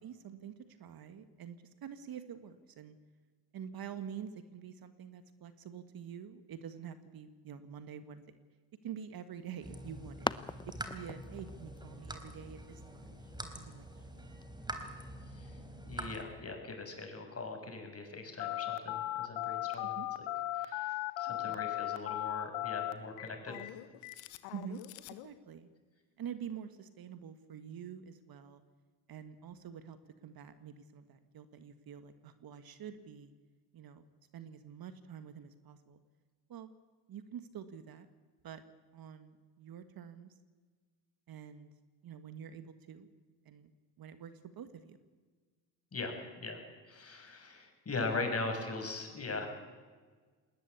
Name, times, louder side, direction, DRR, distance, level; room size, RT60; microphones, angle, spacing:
voice 1, 0.0-0.5 0.8-3.0 3.5-8.2 8.8-10.3 10.8-13.1 13.4-13.9 14.1-14.2 19.8-20.1 21.3-21.6 24.5-24.8 25.2-25.7 26.2-28.6 29.1-30.0 30.2-33.3 33.7-34.0 34.3-36.0 36.5-36.7 37.1-38.1 38.4-38.6 38.9-40.3 41.3-41.7 42.0-43.1 43.5-43.7 44.0-45.0, right 8 dB, 50° right, 11 dB, 1.8 m, -47 dB
sound 1, 9.3-14.4, left 3 dB, 10° left, 0.7 m, -44 dB
sound 2, 9.6-16.2, right 1 dB, 10° right, 3.7 m, -45 dB
voice 2, 15.9-20.3 20.6-23.6 45.9-46.6 46.9-49.5, left 3 dB, 30° left, 4 dB, 6.6 m, -40 dB
Telephone, 18.4-25.3, left 15 dB, 75° left, 1.5 m, -37 dB
20.5 x 18.5 x 8.4 m, 1.5 s
hypercardioid pair, 65°, 44 cm